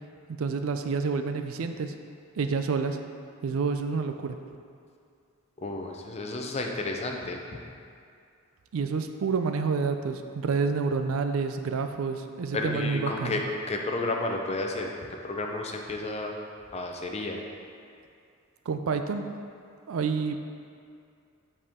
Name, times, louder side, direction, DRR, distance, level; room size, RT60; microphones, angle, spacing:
voice 1, 0.3-1.9 2.4-3.0 3.4-4.4 8.7-13.4 18.7-19.3 19.9-20.4, right 5 dB, 80° right, 7 dB, 0.4 m, -28 dB
voice 2, 5.6-7.4 12.5-16.3 16.7-17.4, left 2 dB, 30° left, 1 dB, 0.6 m, -32 dB
7.5 x 4.3 x 3.6 m, 2.4 s
head